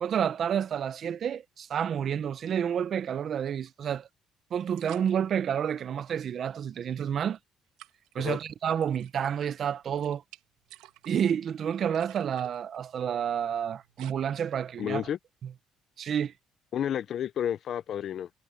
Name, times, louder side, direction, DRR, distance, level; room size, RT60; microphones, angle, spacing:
voice 1, 0.0-4.1 4.5-7.4 8.1-10.2 11.1-15.0 16.0-16.3, right 8 dB, 55° right, 0.8 m, -29 dB
sound 1, 3.7-3.8 4.6-5.1 6.7-7.4 7.8-8.1 8.8-9.5 9.8-14.1, right 16 dB, 90° right, 2.0 m, -52 dB
voice 2, 14.8-15.2 16.7-18.3, left 9 dB, 60° left, 0.7 m, -31 dB
cardioid pair, 90°, 0 cm